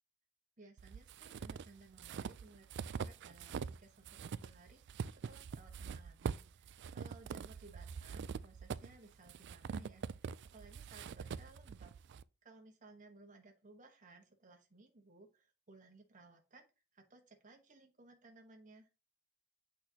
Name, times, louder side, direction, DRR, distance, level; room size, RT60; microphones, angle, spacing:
voice 1, 0.6-11.9 12.4-16.6 16.9-18.9, right 3 dB, 35° right, 2 dB, 1.2 m, -60 dB
sound 1, 0.8-3.8 4.1-12.2, right 6 dB, 55° right, 0.3 m, -44 dB
8.2 x 4.3 x 2.8 m, 0.29 s
head